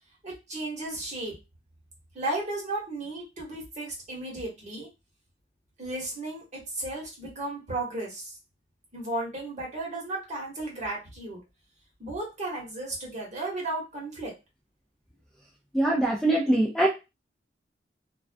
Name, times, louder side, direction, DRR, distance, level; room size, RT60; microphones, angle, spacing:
voice 1, 0.2-1.3 2.1-4.9 5.8-6.4 6.7-8.3 8.9-11.4 12.0-14.3, right 2 dB, 40° right, -3 dB, 1.1 m, -34 dB
voice 2, 15.7-16.9, right 1 dB, ahead, -2 dB, 0.4 m, -23 dB
2.3 x 2.1 x 2.4 m, 0.26 s
head